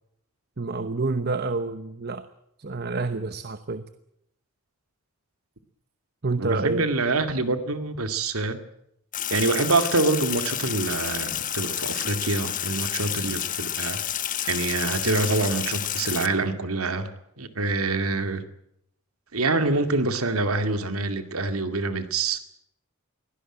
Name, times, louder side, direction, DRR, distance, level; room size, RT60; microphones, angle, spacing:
voice 1, 0.6-2.3 2.6-3.8 6.2-6.8, right 3 dB, 50° right, 1.0 m, -28 dB
voice 2, 6.4-8.6 9.3-14.0 14.4-17.1 17.4-18.4 19.3-22.4, right 3 dB, 85° right, 2.3 m, -25 dB
Sink (filling or washing), 9.1-16.3, left 11 dB, 40° left, 1.1 m, -30 dB
23.0 x 17.0 x 8.9 m
head